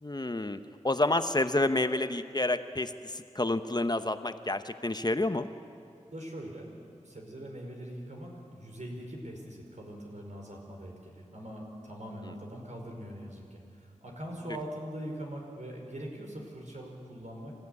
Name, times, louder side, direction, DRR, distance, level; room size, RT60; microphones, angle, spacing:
voice 1, 0.0-0.6 0.8-5.5, left 2 dB, 35° left, 10 dB, 1.0 m, -29 dB
voice 2, 6.1-6.7 7.0-17.5, right 1 dB, 70° right, 0 dB, 5.3 m, -42 dB
26.5 x 15.0 x 9.7 m, 2.5 s
wide cardioid pair, 40°, 13 cm